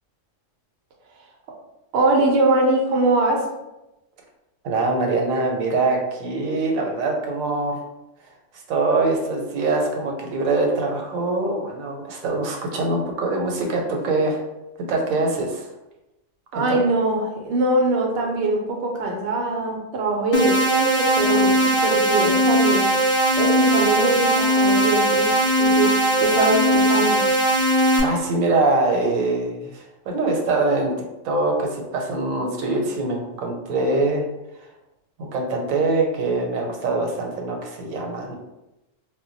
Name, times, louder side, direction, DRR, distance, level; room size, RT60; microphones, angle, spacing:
voice 1, 1.9-3.4 16.5-22.9 23.4-25.3 25.6-25.9 26.2-27.2, right 2 dB, 60° right, 0 dB, 0.7 m, -22 dB
voice 2, 4.6-7.8 8.7-14.4 14.9-15.7 16.5-16.8 28.0-30.9 31.2-34.2 35.2-38.3, right 2 dB, 85° right, 1 dB, 1.0 m, -23 dB
sound 1, 20.3-28.0, right 1 dB, 60° left, 0.3 m, -19 dB
2.2 x 2.1 x 3.8 m, 0.95 s
omnidirectional pair, 1.4 m